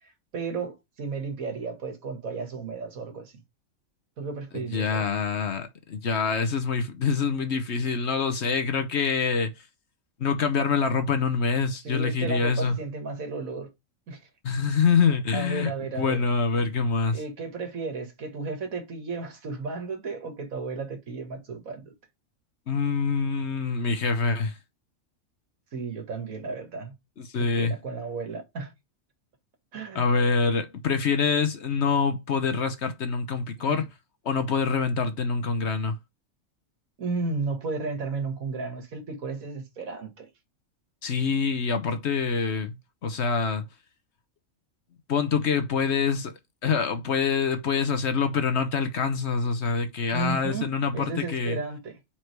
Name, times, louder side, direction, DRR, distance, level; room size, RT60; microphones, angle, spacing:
voice 1, 0.3-3.3 4.2-5.1 11.8-13.7 14.1-14.2 15.3-16.3 17.1-21.9 25.7-27.0 27.4-28.7 29.7-30.1 33.7-33.9 37.0-40.3 50.1-52.0, right 4 dB, 75° right, 2.0 m, -33 dB
voice 2, 4.5-9.5 10.2-12.7 14.4-17.2 22.7-24.6 27.2-27.7 29.9-33.8 34.3-35.9 41.0-42.8 43.0-43.6 45.1-46.3 46.6-51.6, left 5 dB, 55° left, 1.1 m, -25 dB
4.8 x 4.3 x 4.6 m
omnidirectional pair, 1.5 m